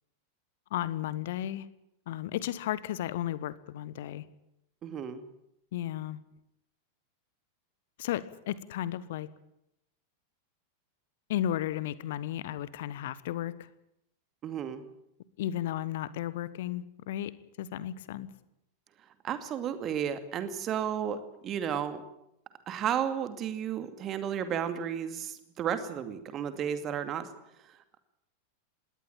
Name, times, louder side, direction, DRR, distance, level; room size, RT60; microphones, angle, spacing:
voice 1, 0.7-1.7 2.1-4.2 5.7-6.2 8.0-9.3 11.3-13.7 15.4-18.3, left 12 dB, 55° left, 17 dB, 1.2 m, -34 dB
voice 2, 4.8-5.2 14.4-14.8 19.2-22.0 22.7-27.3, right 9 dB, 30° right, 10 dB, 2.4 m, -33 dB
20.0 x 18.0 x 9.1 m, 0.80 s
figure-of-eight pair, 90°, 0 cm